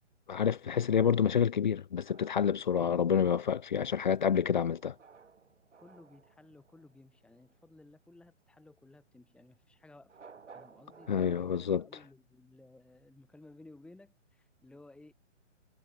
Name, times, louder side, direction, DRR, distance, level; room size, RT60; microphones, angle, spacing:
voice 1, 0.3-4.9 11.1-11.8, left 7 dB, 40° left, 0.4 m, -28 dB
sound 1, 1.9-7.7 10.0-11.7, right 5 dB, 70° right, 3.4 m, -58 dB
voice 2, 5.8-10.2 10.5-15.1, left 2 dB, 5° left, 3.1 m, -56 dB
figure-of-eight pair, 135°, 37 cm